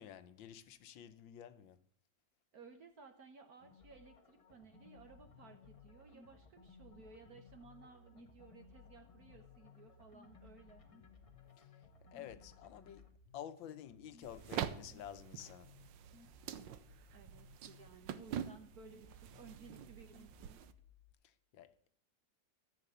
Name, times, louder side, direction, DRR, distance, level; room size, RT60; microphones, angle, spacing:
voice 1, 0.0-1.8 11.6-11.7 12.1-13.0 13.3-15.7 21.2-21.9, left 10 dB, 85° left, 1.6 m, -51 dB
voice 2, 2.5-10.8 17.1-20.6, right 5 dB, 55° right, 1.5 m, -58 dB
sound 1, 3.6-13.1, left 4 dB, 25° left, 0.8 m, -63 dB
sound 2, 5.1-21.1, left 6 dB, 55° left, 1.2 m, -63 dB
sound 3, 14.2-20.7, right 9 dB, 75° right, 1.5 m, -46 dB
13.5 x 7.6 x 6.7 m
omnidirectional pair, 2.1 m